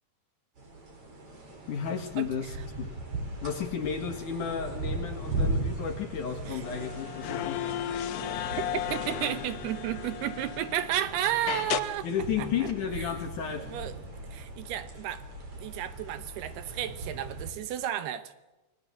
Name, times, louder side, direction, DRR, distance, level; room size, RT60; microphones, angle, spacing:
sound 1, 0.6-17.5, right 2 dB, 35° right, 5.1 m, -38 dB
voice 1, 1.7-2.9 3.4-7.6 12.0-13.7, left 7 dB, 55° left, 6 dB, 2.6 m, -33 dB
sound 2, 6.6-11.0 11.5-11.8, left 11 dB, 85° left, 1.7 m, -34 dB
voice 2, 8.7-12.1 12.4-12.5 13.5-14.0 14.3-15.2 15.5-18.3, right 11 dB, 75° right, 12 dB, 2.8 m, -32 dB
28.5 x 20.0 x 7.8 m, 1.1 s
omnidirectional pair, 5.0 m